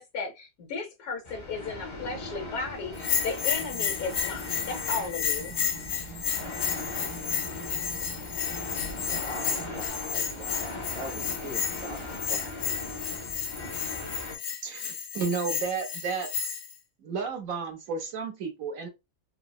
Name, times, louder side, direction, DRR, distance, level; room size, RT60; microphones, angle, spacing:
voice 1, 0.0-5.5, left 4 dB, 80° left, 1.5 m, -35 dB
sound 1, 1.2-14.4, left 2 dB, 35° left, 0.5 m, -39 dB
Bell, 3.0-16.7, left 8 dB, 65° left, 0.8 m, -32 dB
sound 2, 3.6-9.9, right 4 dB, 90° right, 1.2 m, -46 dB
voice 2, 8.9-12.5, equal, 10° right, 0.7 m, -42 dB
voice 3, 14.6-16.3 17.0-18.9, right 5 dB, 70° right, 1.2 m, -32 dB
3.7 x 2.0 x 2.3 m
omnidirectional pair, 1.5 m